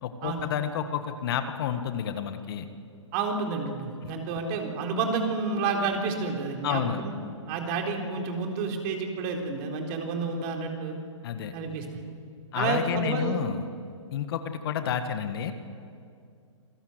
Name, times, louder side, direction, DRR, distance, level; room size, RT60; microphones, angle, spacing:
voice 1, 0.0-2.7 6.6-7.0 11.2-11.5 12.5-13.7 14.1-15.5, left 8 dB, 50° left, 9 dB, 1.6 m, -30 dB
voice 2, 3.1-7.2 7.5-11.0 11.5-11.8 12.5-13.4, right 4 dB, 35° right, 2 dB, 3.9 m, -30 dB
27.5 x 18.0 x 8.0 m, 2.3 s
hypercardioid pair, 125°, 16 cm